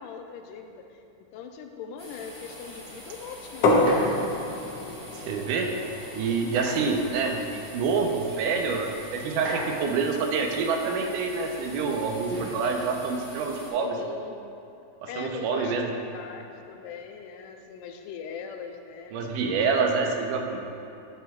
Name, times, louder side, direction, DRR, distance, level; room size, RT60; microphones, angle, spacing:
voice 1, 0.0-4.3 13.8-14.4 15.1-19.2, left 6 dB, 85° left, 5 dB, 2.1 m, -41 dB
sound 1, 2.0-13.7, equal, 5° left, 1.3 m, -45 dB
sound 2, 3.6-9.3, left 1 dB, 65° left, 1.6 m, -29 dB
sound 3, 3.9-4.3 6.4-7.0 8.0-8.1 9.3-10.0 12.3-12.7 13.9-14.3, right 1 dB, 60° right, 2.5 m, -36 dB
voice 2, 5.2-5.7 6.1-13.9 15.2-15.9 19.1-20.6, right 4 dB, 85° right, 2 dB, 2.3 m, -27 dB
11.5 x 9.0 x 2.3 m, 2.7 s
omnidirectional pair, 3.7 m